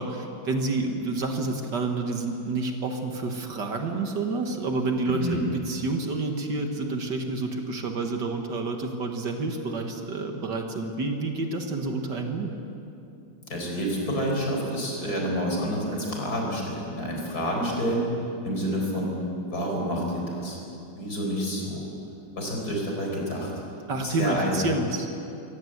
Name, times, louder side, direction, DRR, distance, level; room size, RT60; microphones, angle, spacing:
voice 1, 0.0-12.5 23.9-25.1, right 3 dB, 60° right, 4 dB, 2.1 m, -29 dB
voice 2, 13.4-18.1 18.4-19.1 19.5-20.6 21.0-21.9 22.4-23.5 24.0-24.6, equal, 45° left, -1 dB, 5.2 m, -28 dB
24.0 x 17.0 x 8.0 m, 2.7 s
omnidirectional pair, 2.2 m